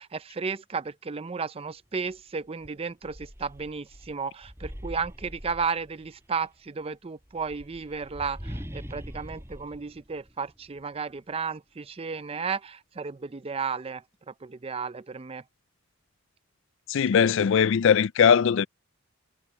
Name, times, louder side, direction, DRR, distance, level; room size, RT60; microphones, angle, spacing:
voice 1, 0.0-15.4, right 5 dB, 25° right, 0.5 m, -33 dB
sound 1, 2.1-2.2 2.6-6.3 7.2-10.8, equal, 10° right, 6.7 m, -43 dB
voice 2, 16.9-18.6, left 7 dB, 60° left, 0.4 m, -20 dB
head